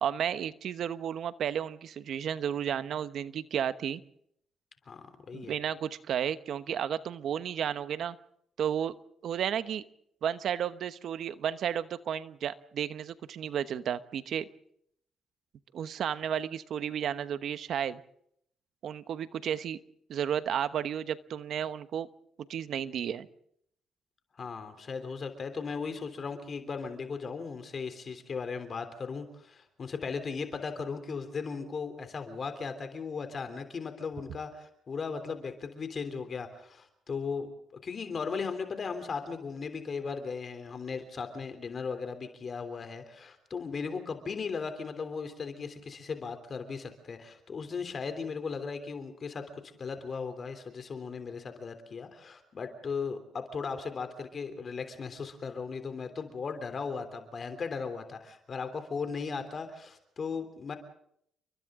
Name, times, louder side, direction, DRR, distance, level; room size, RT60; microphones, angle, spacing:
voice 1, 0.0-4.0 5.3-8.2 8.6-8.9 9.2-9.8 10.2-14.5 15.7-18.0 18.8-19.8 20.1-22.1 22.5-23.3, right 9 dB, 65° right, 13 dB, 1.1 m, -32 dB
voice 2, 4.9-5.5 24.4-37.5 37.8-60.8, left 5 dB, 45° left, 8 dB, 3.3 m, -37 dB
30.0 x 23.0 x 3.8 m, 0.70 s
cardioid pair, 90°, 0 cm